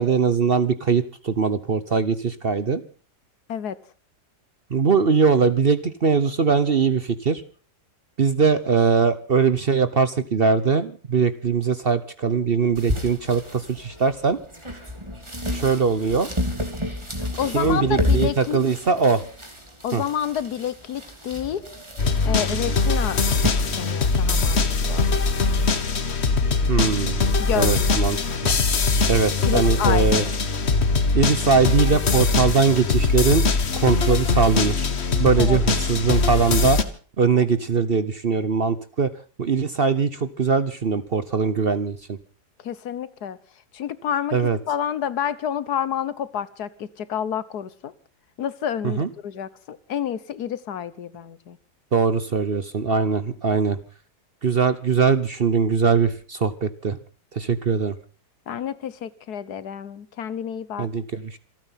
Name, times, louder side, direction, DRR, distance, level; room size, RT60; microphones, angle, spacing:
voice 1, 0.0-2.8 4.7-7.4 8.2-14.4 15.5-16.3 17.5-19.2 19.9-20.0 26.7-28.2 28.4-28.5 29.1-30.2 31.1-33.5 33.7-34.9 35.2-36.8 37.2-39.1 39.4-42.2 44.3-44.6 48.8-49.1 51.9-53.8 54.4-57.0 57.3-58.0 60.8-61.4, right 5 dB, 45° right, 0.9 m, -21 dB
sound 1, 12.7-23.5, left 1 dB, 15° right, 3.0 m, -30 dB
voice 2, 17.4-18.6 19.8-21.6 22.2-23.2 23.8-24.6 24.9-25.2 27.4-28.0 29.4-30.3 35.4-35.6 42.6-43.4 43.7-44.4 44.7-47.9 48.4-51.6 58.5-60.9, left 9 dB, 70° left, 1.6 m, -29 dB
sound 2, 22.0-36.8, left 4 dB, 45° left, 1.5 m, -21 dB
27.0 x 9.1 x 5.7 m
omnidirectional pair, 1.7 m